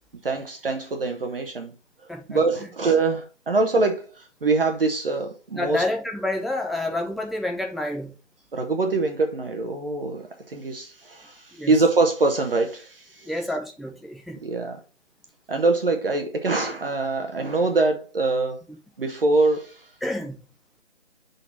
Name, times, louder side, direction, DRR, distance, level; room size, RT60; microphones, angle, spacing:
voice 1, 0.2-1.7 2.3-5.8 8.5-13.3 14.4-14.8 15.5-18.6 19.0-19.9, right 3 dB, 50° right, 1.0 m, -24 dB
voice 2, 2.1-2.4 5.5-8.1 11.5-11.7 13.2-14.4 20.0-20.4, left 1 dB, ahead, 0.4 m, -29 dB
5.6 x 3.9 x 6.0 m
figure-of-eight pair, 160°, 35 cm